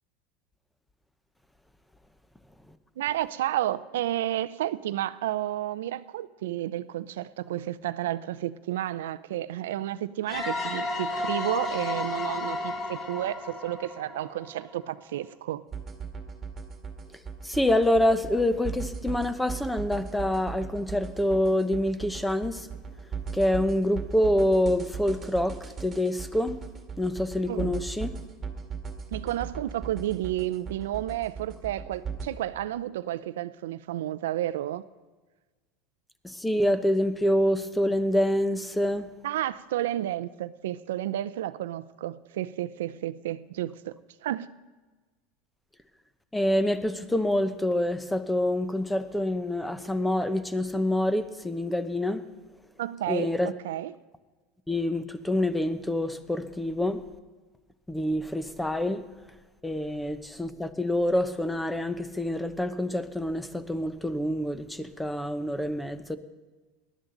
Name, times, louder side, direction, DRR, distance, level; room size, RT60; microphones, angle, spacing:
voice 1, 3.0-15.6 27.5-27.7 29.1-34.8 39.2-44.5 52.8-53.3 53.6-53.9, right 13 dB, 90° right, 15 dB, 0.5 m, -31 dB
sound 1, 10.3-14.9, left 2 dB, 30° left, 2.0 m, -33 dB
sound 2, 15.7-32.3, right 5 dB, 25° right, 2.1 m, -38 dB
voice 2, 17.4-22.7 23.3-26.6 27.0-28.1 36.2-39.1 46.3-52.2 53.1-53.5 54.7-57.0 57.9-59.0 59.6-66.2, left 1 dB, 5° left, 11 dB, 0.9 m, -26 dB
20.0 x 12.0 x 3.9 m, 1.3 s
supercardioid pair, 125°, 0 cm